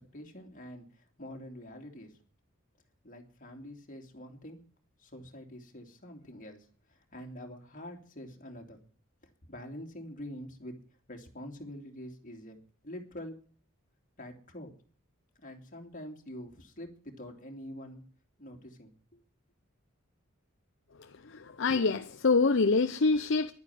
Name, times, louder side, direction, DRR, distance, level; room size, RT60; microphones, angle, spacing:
voice 1, 0.1-0.9 1.2-2.1 3.0-4.6 5.0-8.8 9.5-10.7 11.1-12.6 12.8-13.4 14.2-14.7 15.4-18.0 18.4-18.9, equal, 40° left, 2.9 m, -45 dB
voice 2, 21.6-23.5, left 4 dB, 60° left, 0.7 m, -25 dB
11.5 x 9.5 x 9.4 m
head